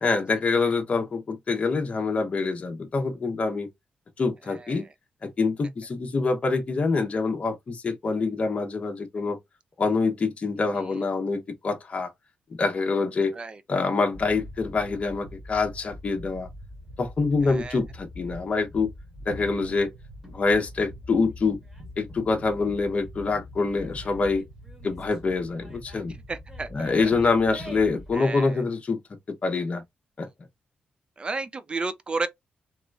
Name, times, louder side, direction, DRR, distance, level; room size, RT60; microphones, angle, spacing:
voice 1, 0.0-3.7 4.2-4.9 5.2-9.4 9.8-12.1 12.6-13.3 13.7-16.5 17.0-18.9 19.3-19.9 20.2-21.6 22.0-24.4 24.8-26.1 26.7-29.0 29.3-29.8 30.2-30.3, left 4 dB, 40° left, 0.9 m, -25 dB
voice 2, 4.5-4.9 10.8-10.9 13.3-13.6 17.4-17.8 26.3-27.3 28.1-28.6 31.2-32.3, right 3 dB, 30° right, 0.5 m, -33 dB
sound 1, 14.1-28.2, left 1 dB, 10° right, 1.6 m, -43 dB
3.1 x 2.9 x 2.3 m
cardioid pair, 100°, 3 cm